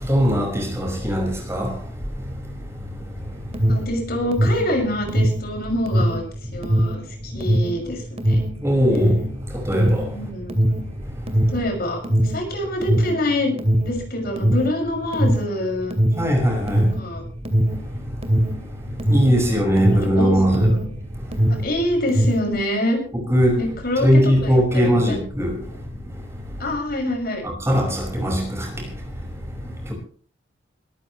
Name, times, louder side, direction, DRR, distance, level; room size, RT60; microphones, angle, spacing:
voice 1, 0.1-1.7 8.6-9.1 9.7-10.0 16.2-16.9 19.1-20.7 23.3-23.6 24.0-25.5 27.7-28.7, equal, 15° right, 5.4 m, -19 dB
Alarm, 3.2-21.0 21.2-22.5, equal, 35° right, 2.4 m, -21 dB
voice 2, 3.7-6.2 6.5-8.4 10.1-10.5 11.5-13.6 13.8-15.9 16.9-17.2 19.4-19.6 19.9-20.7 21.6-23.0 23.6-25.2 26.6-27.4, left 1 dB, 55° left, 6.1 m, -26 dB
22.5 x 13.5 x 3.2 m
head